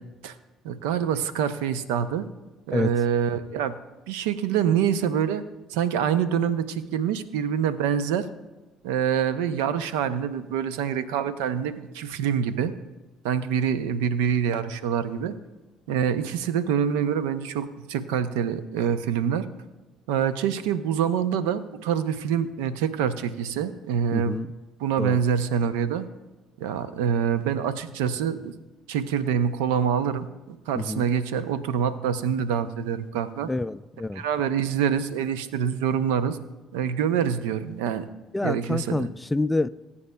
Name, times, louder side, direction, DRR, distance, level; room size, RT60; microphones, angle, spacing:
voice 1, 0.6-2.3 2.7-3.7 4.1-5.4 5.7-8.3 8.8-12.7 13.2-15.3 15.9-19.5 20.1-24.4 24.8-26.1 26.6-28.5 28.9-33.5 34.1-36.4 36.7-38.0 38.4-39.1, right 8 dB, 80° right, 13 dB, 0.5 m, -26 dB
voice 2, 24.1-24.5 25.0-25.2 30.7-31.1 33.5-34.3 38.3-39.7, left 2 dB, 15° left, 16 dB, 0.3 m, -27 dB
19.0 x 8.4 x 2.2 m, 1.1 s
hypercardioid pair, 65°, 0 cm